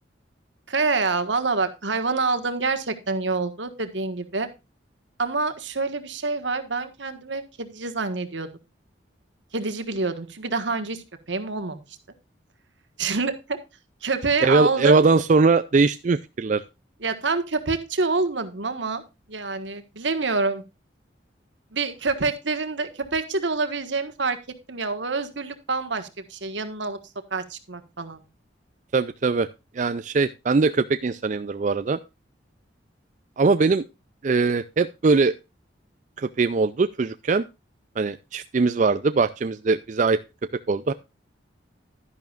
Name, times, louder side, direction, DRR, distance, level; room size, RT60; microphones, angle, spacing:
voice 1, 0.7-4.5 5.2-8.5 9.5-11.8 13.0-13.6 14.0-15.0 17.0-19.0 19.3-20.6 21.7-24.4 24.7-27.0 27.3-28.2, right 3 dB, 75° right, 8 dB, 1.5 m, -27 dB
voice 2, 14.4-16.6 28.9-29.5 29.7-32.0 33.4-33.8 34.2-35.3 36.2-37.4 38.0-40.2 40.7-40.9, right 4 dB, 40° right, 12 dB, 0.4 m, -21 dB
11.5 x 10.5 x 2.4 m, 0.26 s
head